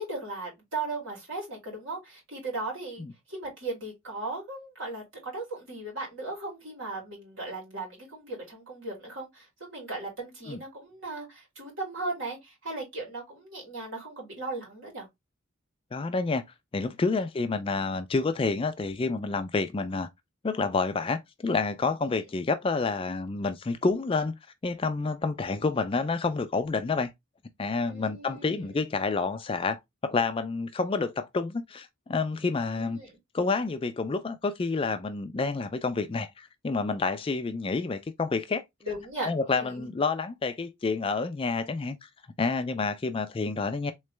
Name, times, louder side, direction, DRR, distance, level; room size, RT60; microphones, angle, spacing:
voice 1, 0.0-3.0 3.3-15.1 27.9-28.6 32.7-33.1 38.8-39.8, right 2 dB, 65° right, 2.7 m, -37 dB
voice 2, 15.9-16.4 16.7-20.1 20.4-27.1 27.6-33.0 33.3-38.6 39.2-42.1 42.4-43.9, left 4 dB, 25° left, 0.3 m, -29 dB
3.7 x 3.2 x 3.2 m
head